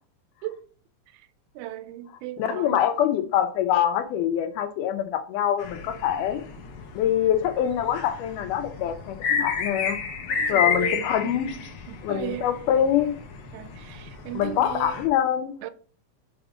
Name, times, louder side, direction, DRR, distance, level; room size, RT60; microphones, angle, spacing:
voice 1, 1.6-2.8 10.3-12.5 13.5-15.0 15.6-15.7, right 13 dB, 80° right, 1.8 m, -36 dB
voice 2, 2.4-6.4 6.9-10.0 10.5-11.5 12.0-13.2 14.4-15.6, left 10 dB, 80° left, 2.3 m, -24 dB
sound 1, 5.6-15.1, left 6 dB, 65° left, 1.4 m, -31 dB
7.0 x 3.7 x 4.9 m
omnidirectional pair, 3.7 m